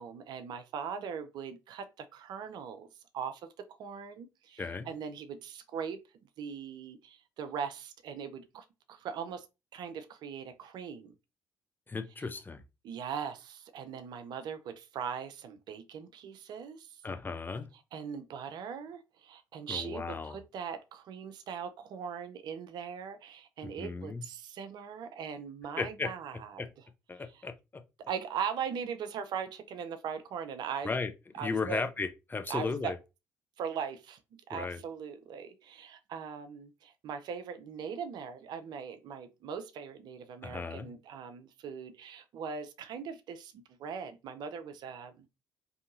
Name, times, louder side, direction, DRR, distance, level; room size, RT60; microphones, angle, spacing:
voice 1, 0.0-2.9 3.1-6.0 6.4-9.5 9.7-11.1 12.8-16.9 17.9-26.6 28.1-30.9 31.3-31.8 32.5-32.9 33.6-34.2 34.5-45.3, right 7 dB, 60° right, 0.4 m, -40 dB
voice 2, 11.9-12.6 17.0-17.7 19.7-20.4 23.6-24.2 25.8-26.1 26.6-26.7 27.1-27.5 30.8-31.1 31.4-33.0 34.5-34.8 40.4-40.9, left 4 dB, 25° left, 0.5 m, -35 dB
2.7 x 2.6 x 2.5 m
hypercardioid pair, 50°, 8 cm